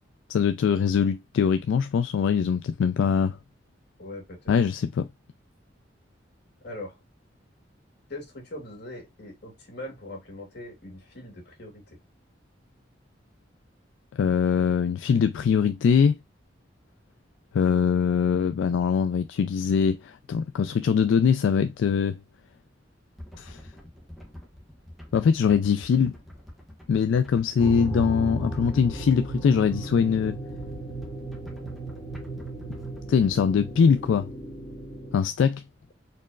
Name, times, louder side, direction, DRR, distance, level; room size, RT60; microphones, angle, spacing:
voice 1, 0.3-3.4 4.5-5.1 14.1-16.2 17.5-22.2 23.4-23.6 25.1-26.1 26.9-30.4 33.1-34.3 35.1-35.6, left 6 dB, 85° left, 0.3 m, -22 dB
voice 2, 4.0-4.5 6.6-7.0 8.1-11.8, left 1 dB, 60° left, 2.2 m, -41 dB
sound 1, 23.1-33.2, left 1 dB, ahead, 1.2 m, -47 dB
sound 2, 27.6-35.2, right 2 dB, 30° left, 1.5 m, -35 dB
4.4 x 3.0 x 2.3 m
head